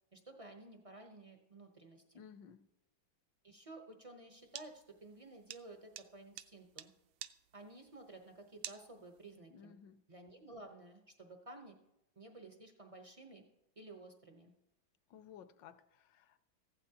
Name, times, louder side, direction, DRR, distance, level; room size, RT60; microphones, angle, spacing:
voice 1, 0.1-2.3 3.4-6.9 7.5-9.8 10.1-11.8 12.2-13.4 13.8-14.5, right 2 dB, 65° right, 0.3 m, -54 dB
voice 2, 2.1-2.7 9.5-10.0 15.1-16.5, left 8 dB, 75° left, 1.3 m, -56 dB
sound 1, 4.4-9.4, right 12 dB, 85° right, 1.4 m, -49 dB
15.0 x 12.5 x 2.8 m
omnidirectional pair, 2.1 m